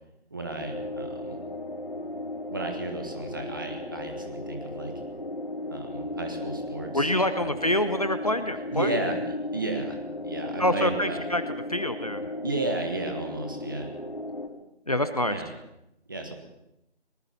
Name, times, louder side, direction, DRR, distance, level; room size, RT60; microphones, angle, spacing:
voice 1, 0.3-1.4 2.5-4.9 5.7-7.1 7.4-7.5 8.7-10.0 10.2-11.2 12.4-13.9 15.3-15.5 16.1-16.3, right 2 dB, 20° right, 4 dB, 1.7 m, -33 dB
sound 1, 0.6-14.5, left 1 dB, 50° left, 4.5 m, -36 dB
voice 2, 6.9-8.9 10.6-11.4 11.7-12.3 14.9-15.4, left 1 dB, 35° left, 10 dB, 1.0 m, -26 dB
24.0 x 20.0 x 5.6 m, 0.86 s
figure-of-eight pair, 165°, 33 cm